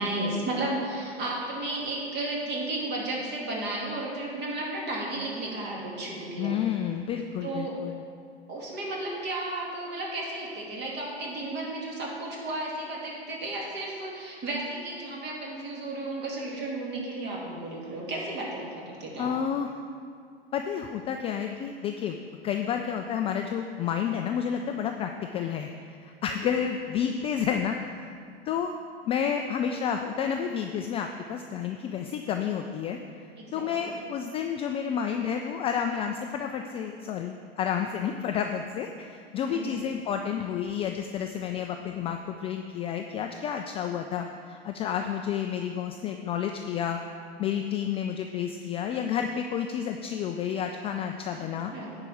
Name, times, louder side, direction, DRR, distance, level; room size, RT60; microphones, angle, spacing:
voice 1, 0.0-6.6 7.4-7.8 8.5-19.3 26.4-26.5 33.4-33.9 39.5-39.8 51.7-52.0, right 2 dB, 35° right, -3 dB, 2.7 m, -33 dB
voice 2, 6.4-8.0 19.2-19.7 20.5-22.2 22.4-28.1 28.5-28.7 29.0-33.0 33.5-47.0 47.4-51.7, left 8 dB, 20° left, 5 dB, 0.3 m, -30 dB
9.7 x 4.9 x 6.9 m, 2.2 s
figure-of-eight pair, 95°, 32 cm